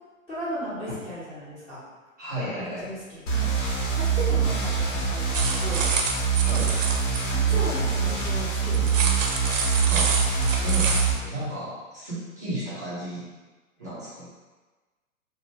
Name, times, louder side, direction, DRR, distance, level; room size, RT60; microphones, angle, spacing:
voice 1, 0.3-1.8 2.8-3.5 4.0-5.9 7.3-9.0, equal, 15° left, -11 dB, 0.7 m, -35 dB
voice 2, 2.2-2.9 6.4-6.8 9.9-10.1 10.4-13.3 13.8-14.3, right 1 dB, 15° right, -10 dB, 0.3 m, -34 dB
sound 1, 3.3-11.1, right 6 dB, 60° left, 0.9 m, -24 dB
sound 2, 5.3-7.2 8.7-11.1, right 4 dB, 65° right, 0.5 m, -27 dB
2.8 x 2.1 x 2.9 m, 1.2 s
figure-of-eight pair, 110°, 41 cm